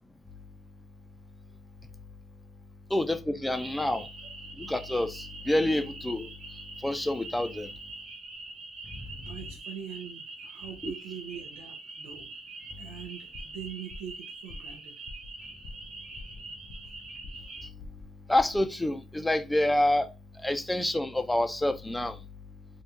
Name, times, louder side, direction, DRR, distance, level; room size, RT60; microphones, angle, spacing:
voice 1, 2.9-4.1 4.6-6.3 6.8-7.7 18.3-20.1 20.4-22.1, left 1 dB, 10° left, 0.5 m, -27 dB
sound 1, 3.5-17.7, right 3 dB, 50° right, 1.1 m, -44 dB
voice 2, 9.0-12.3 12.8-15.0, right 8 dB, 85° right, 0.6 m, -43 dB
sound 2, 13.3-13.6 13.9-14.2 14.5-14.8 15.1-15.3 15.6-15.9 16.2-17.0 17.2-17.5 17.8-18.1 18.3-18.6, left 2 dB, 60° left, 0.7 m, -45 dB
3.6 x 2.4 x 2.8 m
supercardioid pair, 85°, 0 cm